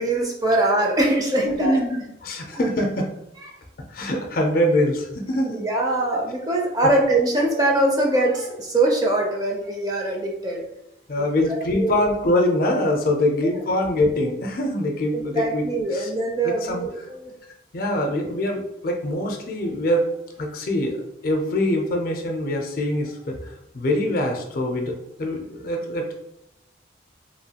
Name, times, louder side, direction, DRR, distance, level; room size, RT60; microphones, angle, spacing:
voice 1, 0.0-1.8 2.5-2.6 5.5-10.6 11.2-11.9 15.1-17.3, right 2 dB, 20° right, -1 dB, 0.4 m, -23 dB
voice 2, 1.4-3.1 3.9-5.7 6.8-7.0 11.1-16.1 16.4-17.1 17.7-20.1 20.4-23.4 23.7-26.1, left 1 dB, 50° left, 2 dB, 0.5 m, -24 dB
3.0 x 2.3 x 2.8 m, 0.84 s
head